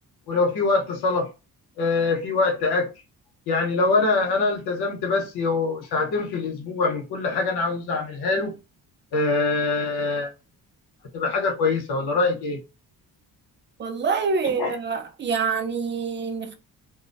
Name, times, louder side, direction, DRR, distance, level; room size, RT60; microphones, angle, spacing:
voice 1, 0.3-1.3 1.8-2.9 3.5-8.6 9.1-10.3 11.1-12.6 14.6-14.7, left 3 dB, 80° left, 0.9 m, -24 dB
voice 2, 13.8-16.5, right 5 dB, 30° right, 0.5 m, -26 dB
2.3 x 2.1 x 2.5 m
cardioid pair, 100°, 38 cm